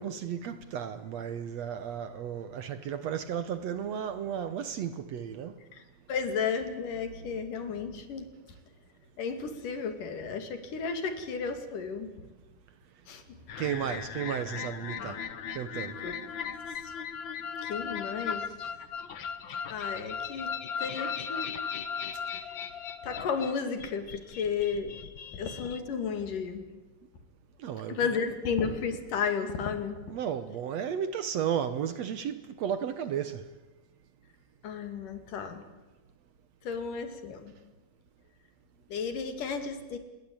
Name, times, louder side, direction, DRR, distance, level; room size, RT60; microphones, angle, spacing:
voice 1, 0.0-5.5 13.6-15.2 15.6-16.0 27.6-28.0 30.1-33.4, right 8 dB, 65° right, 2.0 m, -33 dB
voice 2, 6.1-8.3 9.2-12.1 13.1-13.2 16.0-16.1 17.6-18.5 19.7-20.5 20.8-21.5 23.0-25.0 25.3-26.6 27.9-30.0 34.6-35.6 36.6-37.5 38.9-40.0, left 6 dB, 75° left, 4.0 m, -33 dB
sound 1, 13.5-25.8, left 7 dB, 55° left, 1.4 m, -37 dB
27.0 x 22.0 x 8.7 m
omnidirectional pair, 3.8 m